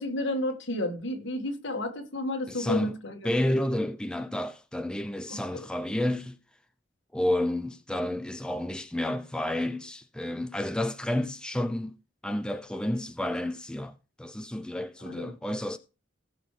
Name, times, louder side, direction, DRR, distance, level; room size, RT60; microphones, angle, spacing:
voice 1, 0.0-3.3 5.3-5.6 15.0-15.3, left 1 dB, 65° left, 1.9 m, -32 dB
voice 2, 2.5-3.0 3.2-6.4 7.1-11.9 12.2-15.8, left 1 dB, 5° left, 0.4 m, -30 dB
18.0 x 6.2 x 3.3 m
head